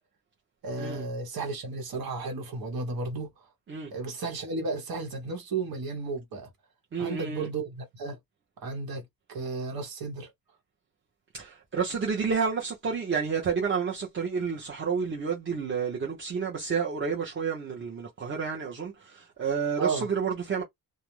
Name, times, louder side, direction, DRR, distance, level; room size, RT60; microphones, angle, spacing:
voice 1, 0.6-3.5 3.9-6.5 7.0-8.2 8.6-10.3 19.8-20.1, right 3 dB, 80° right, 1.0 m, -33 dB
voice 2, 6.9-7.5 11.3-20.6, right 6 dB, 35° right, 0.6 m, -30 dB
2.4 x 2.0 x 2.9 m
wide cardioid pair, 175°, 36 cm